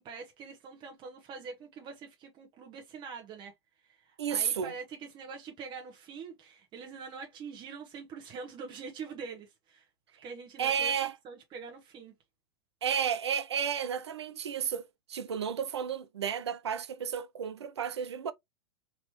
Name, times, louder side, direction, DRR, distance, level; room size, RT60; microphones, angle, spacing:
voice 1, 0.0-3.5 3.8-9.9 10.2-10.9 11.2-12.1, right 5 dB, 35° right, 1.3 m, -44 dB
voice 2, 4.2-4.7 10.6-11.1 12.8-14.8 15.1-18.3, right 8 dB, 90° right, 0.6 m, -32 dB
4.0 x 3.0 x 3.1 m
hypercardioid pair, 105°, 14 cm